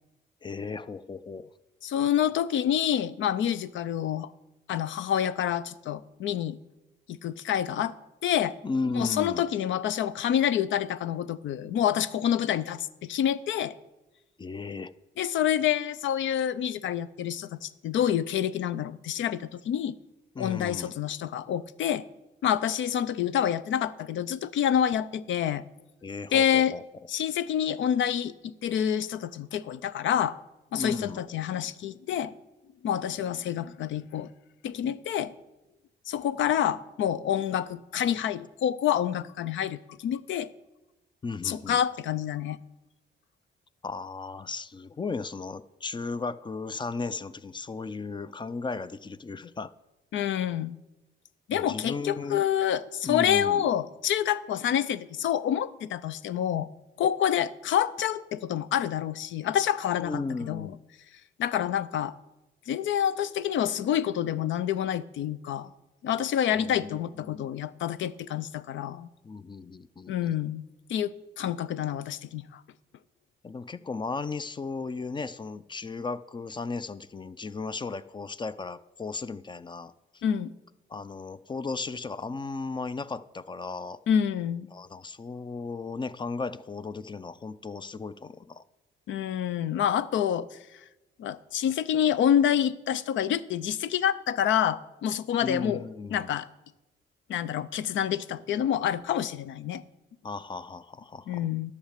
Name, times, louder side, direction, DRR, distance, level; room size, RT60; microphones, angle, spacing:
voice 1, 0.4-1.5 8.6-9.4 14.4-14.9 20.4-21.0 26.0-26.8 30.7-31.2 41.2-41.8 43.8-49.7 51.5-52.4 53.0-53.7 60.0-60.8 66.5-67.0 67.3-67.5 69.2-70.4 73.4-79.9 80.9-84.0 84.7-88.6 95.4-96.4 100.2-101.5, left 4 dB, 25° left, 16 dB, 0.5 m, -35 dB
voice 2, 1.8-4.3 4.7-6.6 7.1-7.9 8.2-8.5 8.9-13.7 15.2-20.0 20.4-22.0 22.4-25.6 26.3-26.7 27.1-30.4 30.7-32.3 32.8-34.3 34.6-35.3 36.1-40.5 41.4-42.6 50.1-50.8 51.5-56.7 57.0-60.7 61.4-62.1 62.7-65.7 66.0-69.1 70.1-70.6 70.9-72.6 80.2-80.5 84.1-84.7 89.1-90.6 91.2-95.8 96.1-96.5 97.3-99.8 101.3-101.7, left 10 dB, 70° left, 17 dB, 0.6 m, -27 dB
11.0 x 6.6 x 6.6 m, 1.0 s
cardioid pair, 90°, 20 cm